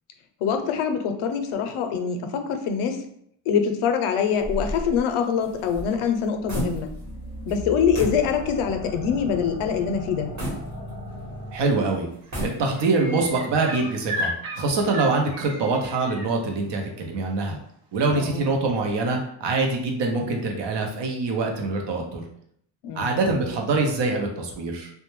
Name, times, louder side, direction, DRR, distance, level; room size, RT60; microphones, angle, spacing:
voice 1, 0.4-3.0 3.5-6.9 7.5-10.3 18.1-18.4 22.8-23.2, left 7 dB, 85° left, 6 dB, 0.5 m, -24 dB
sound 1, 4.4-7.2 7.5-7.6 7.9-8.3 8.7-8.8 10.4-11.4 12.1-13.0, equal, 35° right, 1.0 m, -33 dB
sound 2, 6.4-12.0, equal, 20° left, 0.4 m, -37 dB
voice 2, 11.5-12.1 12.4-17.6 17.9-22.2 22.9-24.9, right 3 dB, 60° right, 2 dB, 0.7 m, -24 dB
sound 3, 11.9-12.0 12.2-16.3 17.9-18.0, equal, 85° right, 0.9 m, -34 dB
2.2 x 2.0 x 3.0 m, 0.69 s
cardioid pair, 130°, 48 cm